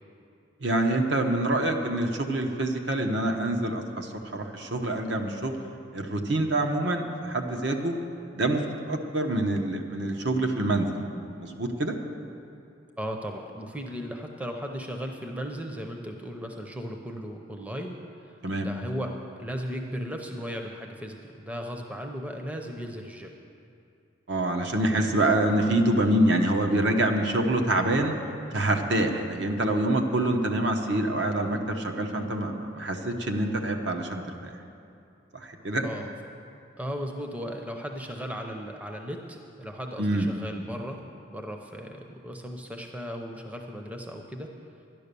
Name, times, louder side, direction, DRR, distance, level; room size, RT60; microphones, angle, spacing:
voice 1, 0.6-5.6 5.9-7.9 8.3-11.0 11.4-11.9 18.4-18.7 24.3-28.1 28.5-34.5 35.3-35.9 40.0-40.3, right 1 dB, 65° right, 3 dB, 1.1 m, -26 dB
voice 2, 13.0-23.4 24.9-25.1 35.8-36.1 36.8-41.0 41.3-44.5, equal, 5° right, 3 dB, 0.7 m, -36 dB
11.5 x 10.5 x 6.8 m, 2.6 s
head